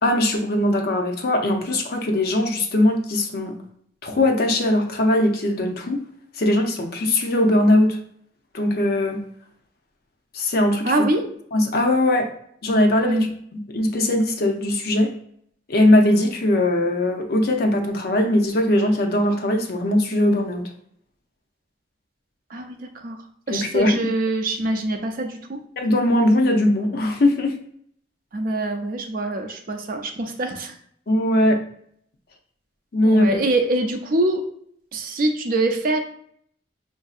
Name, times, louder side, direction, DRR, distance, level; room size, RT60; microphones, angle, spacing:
voice 1, 0.0-3.5 4.0-6.0 6.4-8.0 8.5-9.2 10.3-10.9 11.5-12.3 12.6-15.1 15.7-20.7 23.5-24.0 25.8-27.5 31.1-31.6 32.9-33.3, left 1 dB, 55° left, 4 dB, 0.6 m, -20 dB
voice 2, 10.8-11.2 13.0-13.3 22.5-23.2 23.5-25.6 28.3-30.7 33.0-34.4 34.9-36.0, right 2 dB, 50° right, 5 dB, 0.5 m, -24 dB
5.7 x 2.6 x 2.4 m, 0.66 s
head